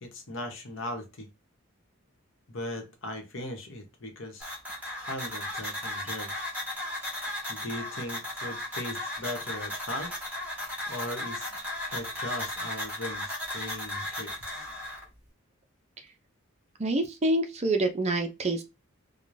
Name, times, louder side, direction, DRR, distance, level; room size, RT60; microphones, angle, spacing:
voice 1, 0.0-1.3 2.5-4.5 5.0-6.5 7.5-10.1 10.9-11.5 11.9-14.6, left 1 dB, 60° left, 4 dB, 1.0 m, -38 dB
sound 1, 4.4-15.0, left 1 dB, 5° right, 1.5 m, -35 dB
voice 2, 16.8-18.6, right 2 dB, 30° right, 5 dB, 0.5 m, -26 dB
4.6 x 2.2 x 2.6 m, 0.25 s
head